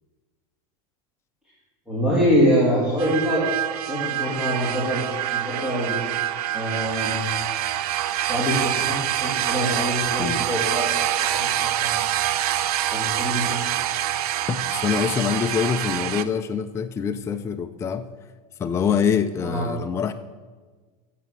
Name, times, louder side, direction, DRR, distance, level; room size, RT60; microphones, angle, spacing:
voice 1, 1.9-3.5 3.8-6.0 6.5-7.2 8.3-12.0 12.9-13.6 19.4-19.7, equal, 5° right, -7 dB, 2.7 m, -25 dB
sound 1, 3.0-16.2, right 12 dB, 85° right, 0.6 m, -26 dB
voice 2, 14.5-18.1 18.6-20.1, left 7 dB, 15° left, 9 dB, 0.4 m, -25 dB
9.1 x 7.6 x 6.1 m, 1.4 s
supercardioid pair, 140°, 19 cm